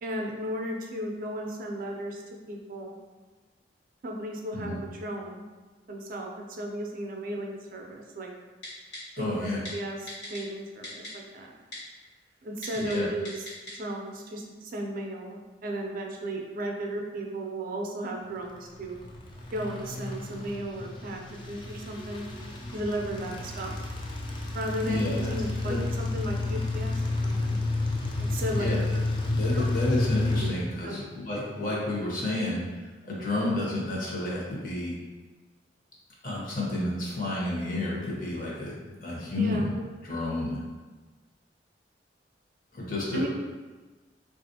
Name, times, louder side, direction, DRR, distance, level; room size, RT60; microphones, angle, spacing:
voice 1, 0.0-2.2 2.5-2.9 4.0-5.4 5.9-8.3 9.2-11.6 12.4-13.5 13.8-19.0 19.5-22.3 22.7-23.8 24.5-27.6 28.2-28.7 29.5-29.6 30.8-31.0 39.4-39.8 43.1-43.3, right 1 dB, 50° right, 1 dB, 0.4 m, -35 dB
Typing, 8.6-9.0 9.7-9.8 10.1-10.4 10.8-11.1 11.7-11.8 12.6-13.0 13.3-13.7 14.1-14.2, left 1 dB, 70° left, 1.1 m, -39 dB
voice 2, 9.1-9.6 12.8-13.1 24.8-25.3 25.6-25.8 28.6-28.8 29.3-34.9 36.2-39.7 40.0-40.6 42.7-43.3, left 1 dB, 50° left, -4 dB, 0.9 m, -30 dB
sound 1, 18.5-30.5, left 2 dB, 25° left, 0.3 m, -31 dB
3.3 x 2.4 x 2.7 m, 1.3 s
head